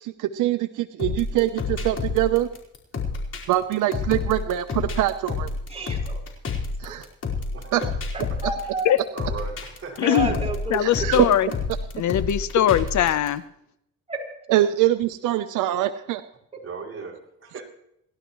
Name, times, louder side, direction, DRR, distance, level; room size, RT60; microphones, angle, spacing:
voice 1, 0.0-2.5 3.5-5.5 6.8-7.1 7.7-7.8 10.8-11.3 14.5-16.2, right 14 dB, 90° right, 10 dB, 0.8 m, -23 dB
sound 1, 1.0-13.3, left 4 dB, 55° left, 4.7 m, -29 dB
voice 2, 5.7-6.2 6.9-7.0 8.4-8.9 10.0-11.3 14.1-14.2, right 3 dB, 20° right, -1 dB, 4.8 m, -30 dB
voice 3, 7.5-7.9 8.3-8.4 9.1-10.0 16.6-17.6, right 5 dB, 45° right, -2 dB, 6.1 m, -37 dB
voice 4, 10.0-10.4 10.7-11.5 11.9-13.4, left 11 dB, 70° left, 14 dB, 0.9 m, -21 dB
29.5 x 12.5 x 3.1 m, 0.75 s
cardioid pair, 90°, 30 cm